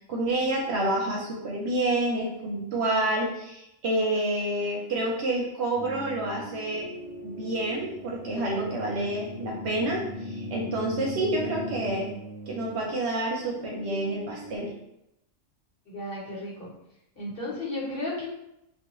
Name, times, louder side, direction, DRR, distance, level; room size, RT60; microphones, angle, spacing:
voice 1, 0.1-6.9 7.2-12.1 12.5-14.7, right 1 dB, 65° right, -1 dB, 0.8 m, -28 dB
sound 1, 5.7-14.6, left 1 dB, 25° left, 0.5 m, -39 dB
voice 2, 15.9-16.7 17.2-18.2, left 2 dB, 50° left, -6 dB, 1.0 m, -34 dB
2.3 x 2.2 x 2.9 m, 0.84 s
omnidirectional pair, 1.3 m